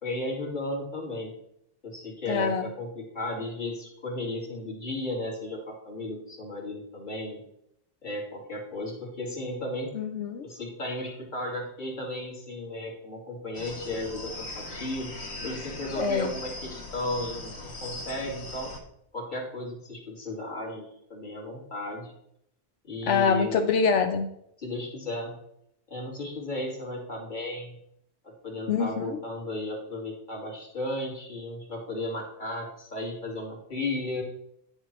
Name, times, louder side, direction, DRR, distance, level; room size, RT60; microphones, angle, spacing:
voice 1, 0.0-1.3 1.8-7.4 8.0-9.9 10.4-18.7 19.1-22.1 22.8-23.7 24.6-25.4 25.9-27.8 28.2-34.2, left 1 dB, 45° left, -2 dB, 2.2 m, -35 dB
voice 2, 2.3-2.7 10.0-10.4 16.0-16.3 23.1-24.3 28.7-29.2, left 5 dB, 90° left, 6 dB, 1.0 m, -25 dB
sound 1, 13.5-18.8, left 2 dB, 65° left, 1.5 m, -39 dB
9.8 x 6.6 x 3.2 m, 0.73 s
omnidirectional pair, 1.2 m